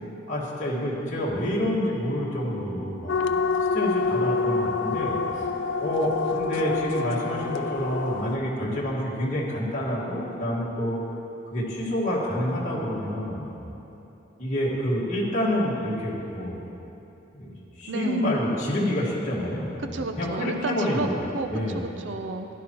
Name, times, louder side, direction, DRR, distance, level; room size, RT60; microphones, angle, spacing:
voice 1, 0.3-3.2 3.7-5.4 5.8-11.0 11.5-13.5 14.4-16.6 17.3-21.1 21.5-21.8, left 1 dB, 40° left, -7 dB, 1.8 m, -28 dB
sound 1, 3.1-8.4, left 4 dB, 80° left, 0.5 m, -27 dB
voice 2, 17.9-18.3 19.8-22.5, right 3 dB, 80° right, 6 dB, 0.6 m, -32 dB
16.0 x 11.0 x 3.0 m, 2.9 s
head